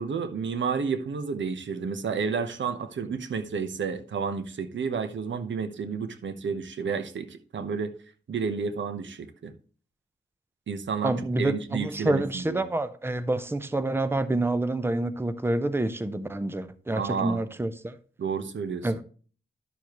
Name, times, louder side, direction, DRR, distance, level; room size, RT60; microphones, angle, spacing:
voice 1, 0.0-7.9 8.3-9.5 10.7-12.6 16.9-17.4 18.2-18.9, right 5 dB, 85° right, 1.0 m, -31 dB
voice 2, 11.0-17.9 18.8-19.0, right 2 dB, 10° right, 0.7 m, -28 dB
11.5 x 6.8 x 3.0 m
wide cardioid pair, 90°, 19 cm